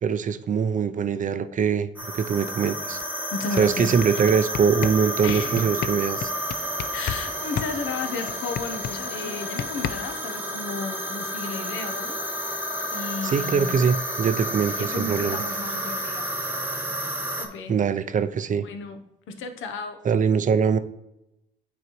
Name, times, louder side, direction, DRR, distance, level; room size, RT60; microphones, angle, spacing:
voice 1, 0.0-1.9 2.1-3.0 3.6-6.2 13.2-15.4 17.7-18.7 20.0-20.8, right 6 dB, 40° right, 12 dB, 0.5 m, -23 dB
sound 1, 2.0-17.5, equal, 10° right, 1.1 m, -31 dB
sound 2, 3.0-3.1 3.4-7.3 7.6-10.3, left 9 dB, 55° left, 0.4 m, -32 dB
voice 2, 3.3-3.9 5.2-5.9 6.9-12.2 12.9-13.8 14.7-16.3 17.4-17.8 18.6-20.0, left 4 dB, 80° left, 6 dB, 0.9 m, -34 dB
9.4 x 4.0 x 3.0 m, 0.88 s
cardioid pair, 90°, 20 cm